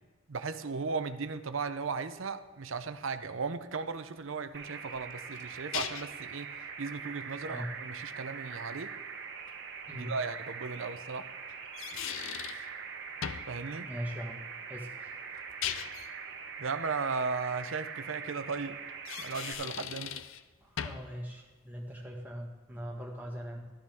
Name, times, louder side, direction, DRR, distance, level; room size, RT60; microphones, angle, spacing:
voice 1, 0.3-6.5 6.8-8.9 9.9-11.3 13.5-13.9 16.6-18.8 19.2-20.2, right 4 dB, 70° right, 11 dB, 0.6 m, -36 dB
sound 1, 4.5-19.5, right 6 dB, 55° right, 1.0 m, -43 dB
sound 2, 4.9-6.2 9.5-9.6 11.5-12.7 13.2-13.6 15.4-16.1 18.9-20.4 20.8-21.1, left 9 dB, 70° left, 0.5 m, -38 dB
voice 2, 7.4-7.8 9.9-10.2 13.8-14.4 14.7-15.1 20.6-23.7, equal, 10° right, -2 dB, 1.6 m, -40 dB
12.5 x 11.5 x 3.6 m, 1.3 s
head